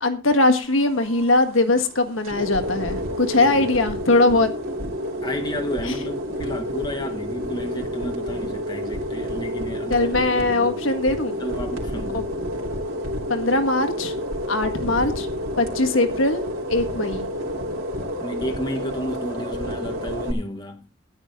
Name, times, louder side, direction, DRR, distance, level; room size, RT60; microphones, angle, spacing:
voice 1, 0.0-4.5 5.8-5.9 9.9-11.4 12.1-12.2 13.3-14.1 14.5-15.3 15.6-17.3, left 2 dB, 80° left, 1.6 m, -21 dB
sound 1, 0.6-20.3, equal, 90° right, 3.3 m, -30 dB
voice 2, 3.4-3.9 5.2-10.8 11.4-12.3 18.2-20.9, equal, 20° left, 1.9 m, -32 dB
14.0 x 10.0 x 3.6 m
head